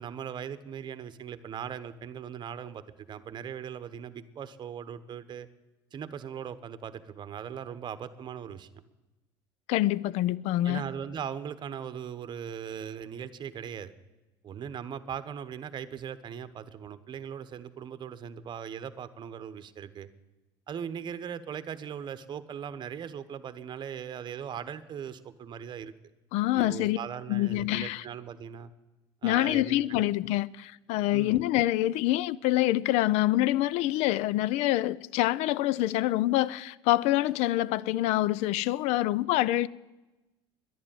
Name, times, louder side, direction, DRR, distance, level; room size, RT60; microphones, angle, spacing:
voice 1, 0.0-5.5 5.9-8.7 10.6-13.9 14.4-20.1 20.7-25.9 26.5-28.7 29.2-30.1 31.1-31.4, right 8 dB, 40° right, 1.1 m, -39 dB
voice 2, 9.7-10.8 26.3-27.0 27.3-28.0 29.2-39.7, left 15 dB, 65° left, 0.5 m, -26 dB
11.0 x 11.0 x 9.0 m
supercardioid pair, 90°, 12 cm